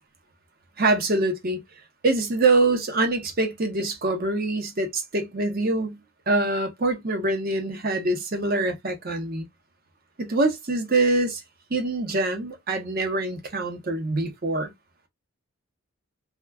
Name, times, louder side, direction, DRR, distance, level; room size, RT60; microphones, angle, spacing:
voice 1, 0.8-1.6 2.0-6.0 6.3-9.5 10.2-11.4 11.7-14.7, right 2 dB, 45° right, 0.7 m, -24 dB
2.3 x 2.2 x 3.3 m
head